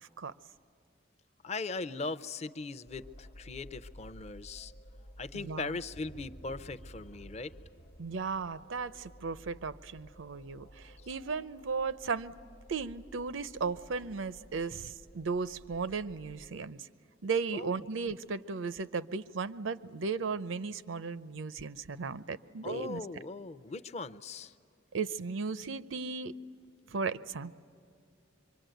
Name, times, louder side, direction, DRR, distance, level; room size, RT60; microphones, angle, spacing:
voice 1, 0.0-0.3 5.3-5.8 8.0-12.4 12.7-16.9 17.2-23.0 24.9-26.3 26.9-27.5, right 4 dB, 85° right, 15 dB, 0.6 m, -36 dB
voice 2, 1.4-4.7 5.2-7.5 17.5-17.7 22.6-24.5, left 3 dB, 35° left, 13 dB, 0.5 m, -39 dB
sound 1, 2.9-16.5, equal, 75° left, 1.0 m, -53 dB
25.0 x 24.0 x 9.2 m, 2.6 s
head